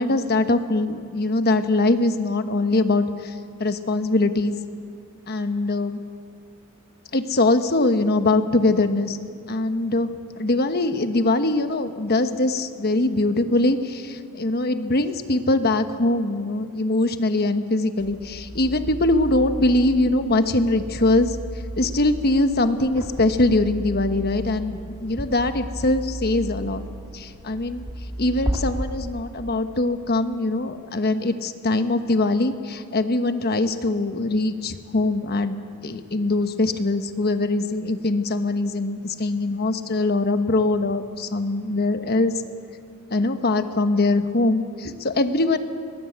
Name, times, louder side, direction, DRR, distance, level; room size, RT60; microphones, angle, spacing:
voice 1, 0.0-3.3 3.6-4.5 5.3-6.0 7.1-9.2 9.5-10.1 10.4-21.4 21.8-26.8 27.1-27.8 28.2-42.3 43.1-45.6, left 2 dB, 50° left, 9 dB, 1.2 m, -22 dB
sound 1, 18.0-28.6, right 1 dB, 20° right, 2.4 m, -34 dB
22.0 x 20.0 x 8.0 m, 2.3 s
head